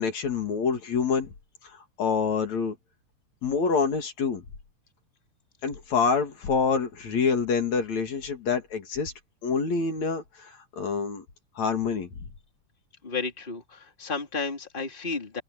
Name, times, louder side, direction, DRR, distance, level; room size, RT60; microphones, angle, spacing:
voice 1, 0.0-1.3 2.0-2.8 3.4-4.4 5.6-9.1 9.4-11.2 11.6-12.1, left 5 dB, 65° left, 3.6 m, -26 dB
voice 2, 13.0-15.4, left 4 dB, 15° left, 3.2 m, -32 dB
open air
omnidirectional pair, 3.5 m